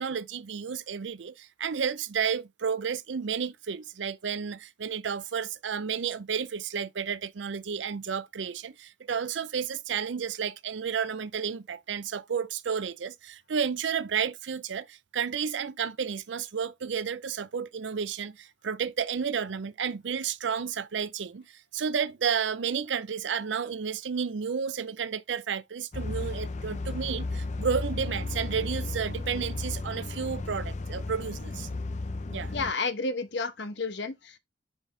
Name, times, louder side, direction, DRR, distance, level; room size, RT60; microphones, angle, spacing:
voice 1, 0.0-21.4 21.7-31.7 32.3-32.5, right 7 dB, 85° right, 0.5 m, -32 dB
sound 1, 25.9-32.7, left 2 dB, 40° left, 0.5 m, -34 dB
voice 2, 32.5-34.4, left 3 dB, 70° left, 1.0 m, -31 dB
5.2 x 5.1 x 3.8 m
head